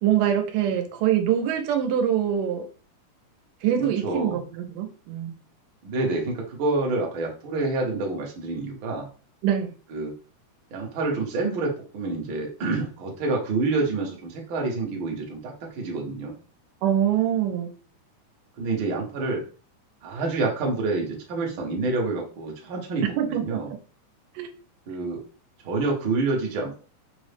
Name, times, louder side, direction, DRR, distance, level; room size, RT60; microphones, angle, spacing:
voice 1, 0.0-2.7 3.6-5.4 9.4-9.7 16.8-17.7 23.0-23.6 24.4-24.5, right 10 dB, 90° right, 5 dB, 2.2 m, -24 dB
voice 2, 3.8-4.4 5.8-9.1 9.9-10.1 10.7-16.4 18.6-19.4 20.0-23.7 24.9-25.2 25.6-26.8, right 3 dB, 65° right, -1 dB, 1.2 m, -28 dB
5.2 x 2.0 x 3.3 m, 0.37 s
omnidirectional pair, 3.7 m